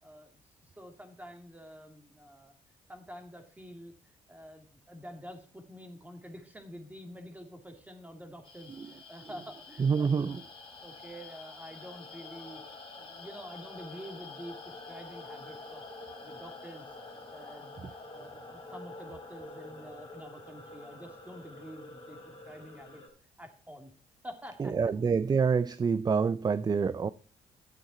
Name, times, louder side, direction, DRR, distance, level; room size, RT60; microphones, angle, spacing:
voice 1, 0.0-2.5 2.9-3.9 4.3-10.3 10.7-12.6 13.0-15.8 16.2-16.9 17.3-17.7 18.1-22.2 22.5-23.0 23.4-23.9 24.2-24.8, equal, 10° right, 2.4 m, -48 dB
sound 1, 8.4-23.1, left 3 dB, 35° left, 3.6 m, -47 dB
voice 2, 9.8-10.4 17.8-17.9 24.6-27.1, right 5 dB, 30° right, 0.4 m, -27 dB
11.0 x 7.6 x 4.3 m
supercardioid pair, 70°, 14 cm